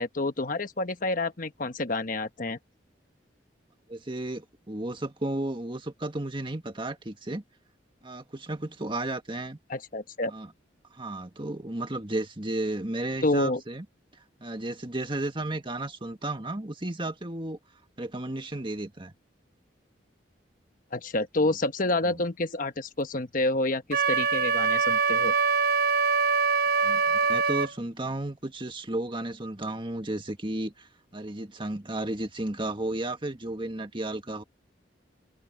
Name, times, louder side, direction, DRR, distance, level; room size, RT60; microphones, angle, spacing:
voice 1, 0.0-2.6 9.7-10.3 13.2-13.6 20.9-25.3, left 2 dB, 50° left, 1.1 m, -28 dB
voice 2, 3.9-7.4 8.0-9.6 10.3-10.5 10.9-13.9 14.4-17.6 18.0-19.1 22.1-22.2 26.7-34.4, right 1 dB, 25° right, 1.8 m, -33 dB
Wind instrument woodwind instrument, 23.9-27.7, right 5 dB, 55° right, 1.1 m, -24 dB
head